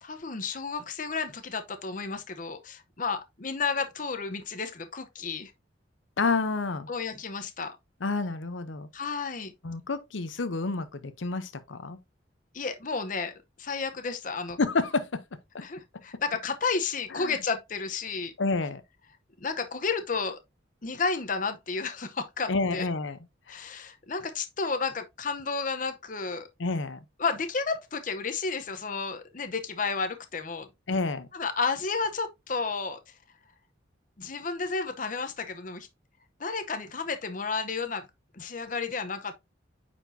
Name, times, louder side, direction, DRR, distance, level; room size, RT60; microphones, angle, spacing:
voice 1, 0.0-5.5 6.9-7.8 8.9-9.5 12.5-14.6 15.6-18.3 19.4-20.4 20.8-22.9 23.5-26.5 27.2-30.7 31.3-33.0 34.2-35.9 36.4-38.1 38.3-39.3, left 4 dB, 45° left, 0.8 m, -32 dB
voice 2, 6.2-6.9 8.0-8.9 9.6-12.0 14.6-15.2 17.1-17.3 18.4-18.8 22.5-23.2 23.5-23.7 26.6-27.0 30.9-31.3, left 3 dB, 90° left, 0.7 m, -29 dB
9.1 x 4.4 x 2.6 m
head